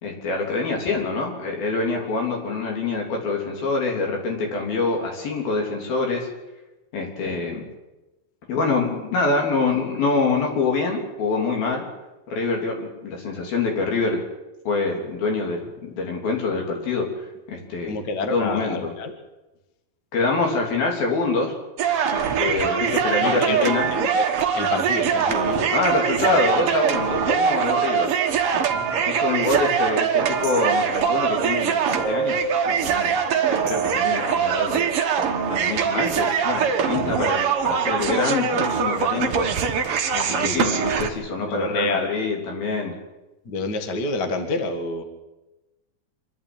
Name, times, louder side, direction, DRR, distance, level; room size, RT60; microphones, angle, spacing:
voice 1, 0.0-6.3 6.9-7.7 8.5-11.9 12.3-14.2 14.7-17.1 17.5-18.0 18.3-18.9 20.1-21.5 22.1-23.9 25.7-28.1 29.0-33.2 33.5-34.9 35.5-39.5 40.1-43.0, left 3 dB, 80° left, 1 dB, 5.2 m, -25 dB
voice 2, 17.9-19.1 23.2-24.3 24.5-25.7 26.2-26.7 26.9-27.3 28.7-29.1 29.5-29.6 37.0-37.2 40.3-40.6 41.5-42.1 43.5-45.0, left 2 dB, 40° left, 6 dB, 1.8 m, -28 dB
sound 1, 21.8-41.1, right 7 dB, 55° right, 1.7 m, -22 dB
26.5 x 11.5 x 8.9 m, 1.1 s
omnidirectional pair, 4.2 m